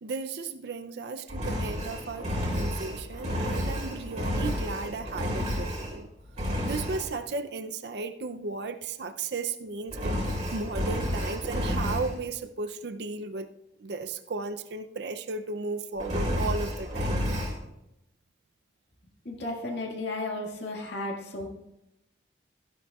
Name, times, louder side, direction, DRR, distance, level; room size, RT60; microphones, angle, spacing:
voice 1, 0.0-6.1 6.6-10.2 10.5-13.5 13.8-17.2, right 3 dB, 65° right, 9 dB, 0.5 m, -35 dB
Engine, 1.3-6.0 6.4-7.1 9.9-12.2 16.0-17.6, equal, 40° right, 2.4 m, -30 dB
voice 2, 19.3-21.5, left 2 dB, 75° left, -1 dB, 1.9 m, -34 dB
14.0 x 11.0 x 2.4 m, 0.85 s
head